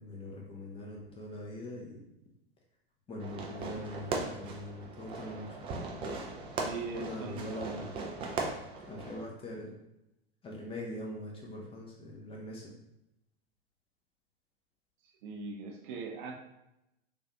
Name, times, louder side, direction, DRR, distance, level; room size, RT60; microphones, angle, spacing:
voice 1, 0.0-2.0 3.1-5.7 6.9-7.9 8.9-9.7 10.4-12.7, left 1 dB, 20° left, -2 dB, 0.6 m, -42 dB
Fireworks, 3.2-9.2, right 3 dB, 20° right, 0.3 m, -38 dB
voice 2, 6.6-7.5 15.2-16.3, right 4 dB, 50° right, 1 dB, 0.6 m, -40 dB
3.4 x 2.4 x 2.7 m, 0.87 s
figure-of-eight pair, 90°, 31 cm